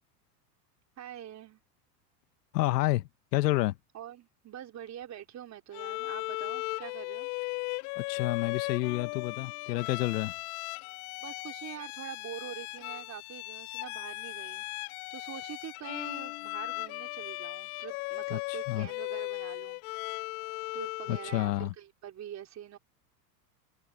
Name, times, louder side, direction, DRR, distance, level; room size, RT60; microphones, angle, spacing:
voice 1, 1.0-1.6 3.9-7.3 11.2-19.8 20.7-22.8, right 10 dB, 35° right, 4.0 m, -45 dB
voice 2, 2.5-3.8 8.0-10.3 18.3-18.9 21.1-21.7, left 17 dB, 75° left, 1.4 m, -29 dB
Bowed string instrument, 5.7-21.5, left 27 dB, 60° left, 2.2 m, -37 dB
hypercardioid pair, 110°, 49 cm